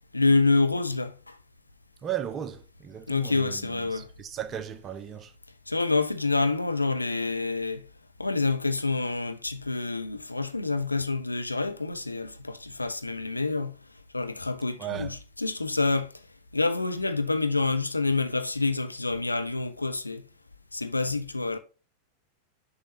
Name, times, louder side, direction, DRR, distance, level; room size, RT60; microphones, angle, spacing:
voice 1, 0.1-1.4 3.1-4.1 5.7-7.9 8.2-13.8 14.1-16.1 16.5-20.2 20.7-21.6, left 3 dB, 85° left, 0.5 m, -27 dB
voice 2, 2.0-5.3 14.8-15.1, right 10 dB, 25° right, 0.7 m, -36 dB
6.6 x 5.3 x 2.9 m
figure-of-eight pair, 90°, 0 cm